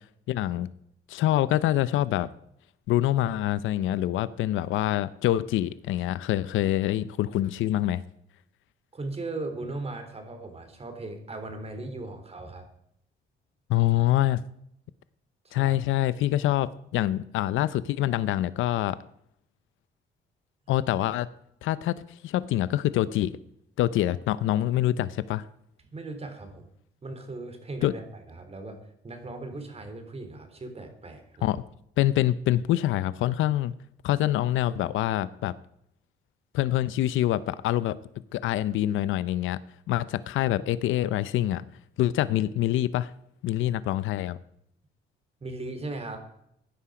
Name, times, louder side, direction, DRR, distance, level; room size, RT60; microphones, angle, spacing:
voice 1, 0.3-0.7 1.1-2.3 2.9-8.0 13.7-14.4 15.5-19.0 20.7-21.3 21.6-23.3 23.8-25.4 27.8-27.9 31.4-31.6 32.0-33.7 34.0-35.5 36.5-38.0 38.3-39.6 39.9-41.6 42.0-43.1 43.4-44.4, left 13 dB, 85° left, 17 dB, 0.6 m, -25 dB
voice 2, 8.9-12.7 15.4-15.8 25.9-26.7 27.0-31.6 45.4-46.2, right 2 dB, 30° right, 7 dB, 3.5 m, -38 dB
16.0 x 10.0 x 5.0 m, 0.73 s
cardioid pair, 90°, 20 cm